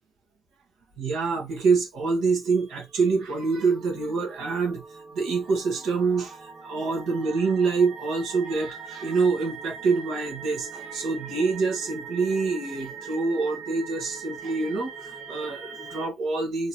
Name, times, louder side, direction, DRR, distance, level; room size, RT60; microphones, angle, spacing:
voice 1, 1.0-16.7, right 4 dB, 80° right, 1.1 m, -26 dB
sound 1, 2.8-16.1, right 6 dB, 40° right, 1.5 m, -41 dB
2.9 x 2.6 x 2.9 m
cardioid pair, 90°, 0 cm